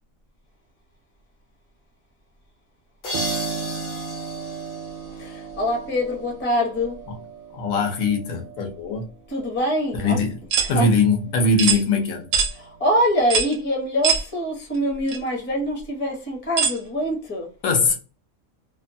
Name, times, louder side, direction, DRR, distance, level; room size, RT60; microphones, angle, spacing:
sound 1, 3.0-5.8, left 2 dB, 50° left, 0.7 m, -34 dB
Piano, 3.1-11.6 12.0-13.0, right 6 dB, 90° right, 1.0 m, -36 dB
voice 1, 5.1-7.0 9.3-10.2 10.6-10.9 12.5-17.5, equal, 10° left, 0.5 m, -24 dB
voice 2, 7.5-9.1 9.9-10.4 10.7-12.3 17.6-17.9, left 3 dB, 75° left, 1.2 m, -21 dB
sound 2, 10.5-10.7 11.6-11.8 12.3-12.5 13.3-13.5 14.0-14.2 15.1-15.2 16.6-16.8, right 6 dB, 60° right, 0.7 m, -21 dB
2.8 x 2.2 x 2.6 m
omnidirectional pair, 1.4 m